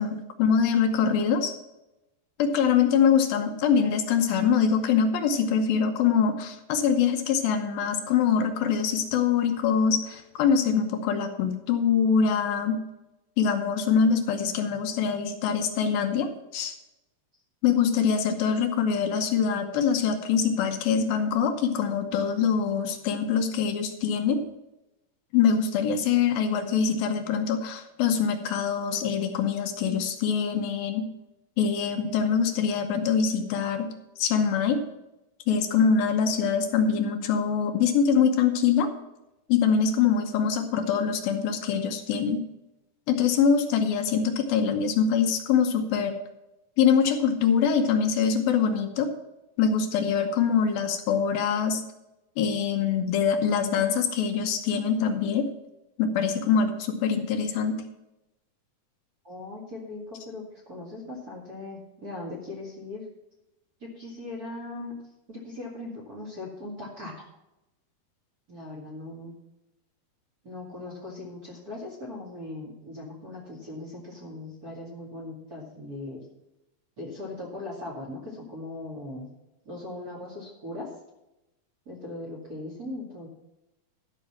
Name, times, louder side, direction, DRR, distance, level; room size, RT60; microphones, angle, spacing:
voice 1, 0.0-1.5 2.4-12.8 13.4-16.8 17.6-24.4 25.3-31.1 31.6-33.9 34.2-34.8 35.5-38.9 39.5-42.4 43.1-46.2 46.8-49.1 49.6-51.8 52.4-55.5 56.0-57.8, left 6 dB, 75° left, 5 dB, 2.7 m, -24 dB
voice 2, 59.2-63.1 63.8-65.0 65.3-67.3 68.5-69.3 70.4-76.3 77.0-79.3 79.6-80.9 81.9-83.3, left 2 dB, 30° right, -3 dB, 2.1 m, -39 dB
12.5 x 6.0 x 7.3 m, 0.93 s
omnidirectional pair, 4.4 m